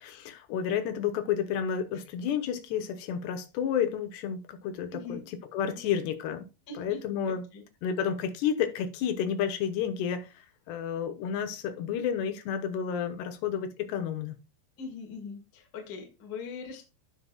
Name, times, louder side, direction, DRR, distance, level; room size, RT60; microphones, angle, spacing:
voice 1, 0.0-5.2 5.5-6.5 6.8-7.4 7.8-14.4, left 8 dB, 80° left, 3.1 m, -31 dB
voice 2, 4.9-5.2 5.7-5.8 6.7-7.0 7.3-7.6 14.8-16.8, left 4 dB, 45° left, 1.2 m, -41 dB
16.0 x 5.8 x 2.3 m
omnidirectional pair, 4.8 m